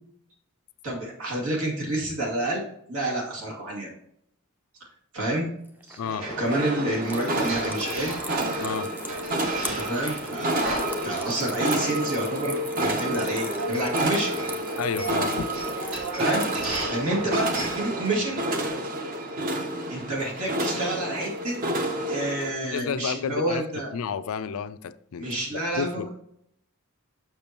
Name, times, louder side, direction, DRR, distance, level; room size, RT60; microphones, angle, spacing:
voice 1, 0.8-2.6 2.9-3.9 5.1-5.5 5.9-6.0 6.4-8.2 9.6-10.6 11.0-14.3 16.2-16.5 16.9-18.4 19.9-21.6 22.1-23.9 25.2-26.1, right 1 dB, 90° right, 2.3 m, -28 dB
sound 1, 5.6-17.3, right 1 dB, 10° right, 0.4 m, -42 dB
voice 2, 6.0-6.3 8.6-8.9 14.8-15.5 22.6-23.6 23.9-26.1, left 6 dB, 75° left, 0.4 m, -31 dB
sound 2, 6.0-18.7, right 1 dB, 70° right, 2.0 m, -35 dB
sound 3, 6.5-22.5, right 1 dB, 40° right, 0.7 m, -30 dB
6.9 x 6.0 x 2.9 m
head